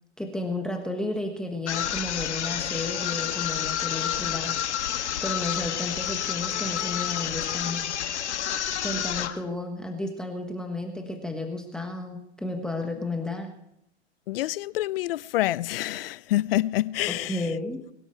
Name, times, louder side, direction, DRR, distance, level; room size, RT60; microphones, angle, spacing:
voice 1, 0.2-4.6 5.2-8.0 8.8-13.5 17.1-17.8, left 2 dB, ahead, 1.4 m, -32 dB
sound 1, 1.7-9.4, left 10 dB, 85° left, 1.6 m, -29 dB
voice 2, 14.3-17.4, left 16 dB, 60° left, 0.5 m, -27 dB
21.5 x 12.0 x 4.6 m
hypercardioid pair, 145°, 33 cm